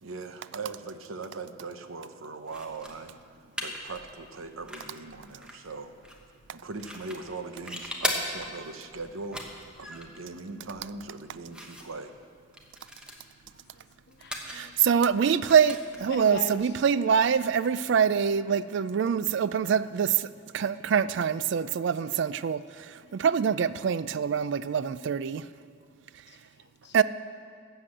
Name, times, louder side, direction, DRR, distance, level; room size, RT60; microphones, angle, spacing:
voice 1, 0.0-5.9 6.5-9.4 9.8-12.2 26.8-26.9, right 3 dB, 85° right, 8 dB, 0.8 m, -40 dB
sound 1, 2.4-17.6, equal, 5° right, 1.1 m, -41 dB
voice 2, 13.5-14.7 16.1-16.6 23.0-23.2 26.3-26.9, left 4 dB, 55° left, 6 dB, 0.9 m, -42 dB
voice 3, 14.4-25.5 26.9-27.0, right 7 dB, 60° right, 15 dB, 0.3 m, -25 dB
12.5 x 7.8 x 7.7 m, 2.1 s
head